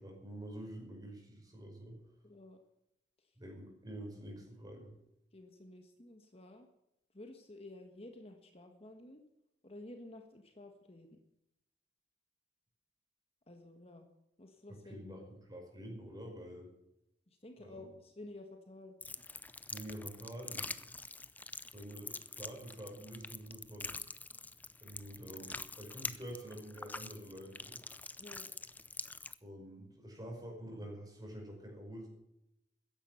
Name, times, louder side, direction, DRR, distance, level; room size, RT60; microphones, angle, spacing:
voice 1, 0.0-2.0 3.4-4.9 14.8-16.7 17.6-17.9 19.7-21.0 21.7-23.9 24.8-27.8 29.4-32.1, right 1 dB, 20° right, 1 dB, 5.5 m, -47 dB
voice 2, 2.2-2.6 5.3-6.7 7.1-9.2 9.6-11.2 13.5-14.1 14.4-15.3 17.3-19.0 28.2-28.5, left 2 dB, 35° left, 5 dB, 1.4 m, -52 dB
sound 1, 19.0-29.3, left 3 dB, 10° left, 0.5 m, -45 dB
14.5 x 10.5 x 7.0 m, 0.84 s
head